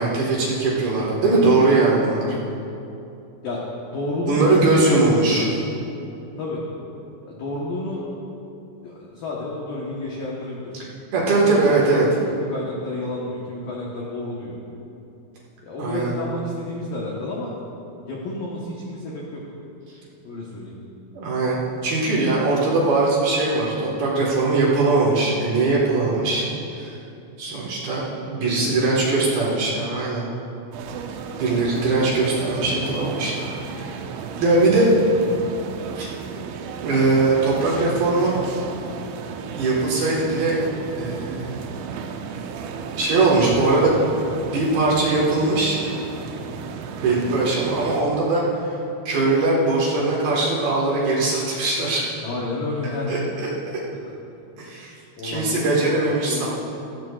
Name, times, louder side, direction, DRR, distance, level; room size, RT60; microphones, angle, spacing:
voice 1, 0.0-2.4 4.3-5.5 11.1-12.0 15.8-16.1 21.1-21.6 21.8-26.5 26.7-26.9 27.4-30.2 31.4-33.3 33.7-33.9 34.4-34.9 36.0-36.1 36.8-38.4 39.5-40.6 40.9-41.6 43.0-44.0 44.5-45.8 47.0-48.7 49.0-52.0 53.1-53.2 54.6-54.9 55.2-56.5, right 3 dB, 60° right, -5 dB, 2.8 m, -20 dB
voice 2, 3.9-5.5 6.4-6.6 7.3-8.1 8.8-10.7 11.4-14.6 15.6-17.5 18.0-19.4 20.2-20.8 26.0-26.3 28.4-29.3 34.6-34.7 47.0-47.3 52.2-53.1 54.0-54.1 55.2-55.8 56.2-56.5, left 2 dB, 80° left, -4 dB, 2.0 m, -30 dB
sound 1, 30.7-48.0, right 5 dB, 80° right, 2.7 m, -34 dB
16.0 x 14.5 x 2.4 m, 2.7 s
omnidirectional pair, 5.9 m